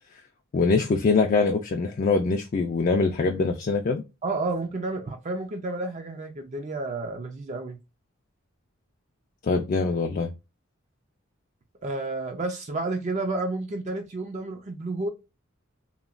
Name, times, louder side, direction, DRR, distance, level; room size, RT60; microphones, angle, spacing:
voice 1, 0.5-4.0 9.4-10.3, left 4 dB, 40° left, 0.3 m, -23 dB
voice 2, 4.2-7.8 11.8-15.1, right 2 dB, 35° right, 0.4 m, -31 dB
2.9 x 2.2 x 2.4 m
head